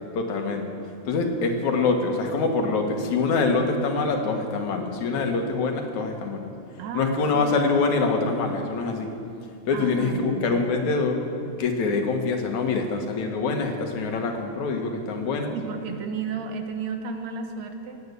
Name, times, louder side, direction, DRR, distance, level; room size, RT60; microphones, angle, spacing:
voice 1, 0.2-0.7 1.1-6.5 6.9-9.1 9.7-11.2 11.6-15.6, left 4 dB, 75° left, 3 dB, 2.9 m, -25 dB
voice 2, 6.8-7.6 9.7-10.7 15.5-18.0, right 5 dB, 70° right, 5 dB, 2.3 m, -33 dB
18.0 x 9.7 x 8.2 m, 2.6 s
omnidirectional pair, 3.3 m